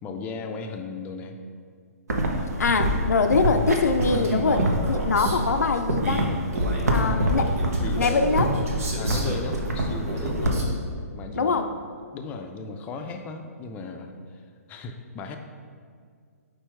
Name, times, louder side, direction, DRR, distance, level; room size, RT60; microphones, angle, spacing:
voice 1, 0.0-1.4 7.0-7.5 7.8-8.3 9.0-10.6 11.1-11.9 12.1-14.4 14.7-15.4, left 4 dB, 20° left, 5 dB, 0.4 m, -36 dB
sound 1, 2.1-10.6, right 1 dB, 85° right, 0.9 m, -26 dB
voice 2, 2.6-6.3 6.9-7.5 8.0-8.5 11.4-11.7, left 4 dB, 85° left, 6 dB, 0.4 m, -23 dB
Male speech man speaking, 4.0-5.4 6.0-9.5 10.0-10.7, right 1 dB, 65° right, 1.2 m, -31 dB
4.6 x 4.5 x 4.5 m, 2.1 s
hypercardioid pair, 140°, 8 cm